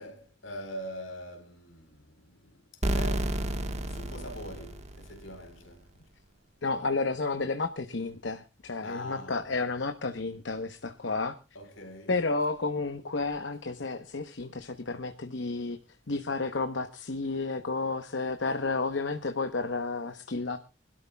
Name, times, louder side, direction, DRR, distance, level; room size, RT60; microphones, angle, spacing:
voice 1, 0.0-2.1 2.4-2.5 2.9-3.3 3.9-5.8 8.8-9.7 11.5-12.1, left 1 dB, 75° left, 3.9 m, -43 dB
sound 1, 2.8-5.5, right 1 dB, 35° right, 1.4 m, -31 dB
voice 2, 6.6-11.3 12.1-15.8 16.1-20.6, left 3 dB, 60° left, 1.0 m, -31 dB
24.5 x 12.5 x 2.3 m
head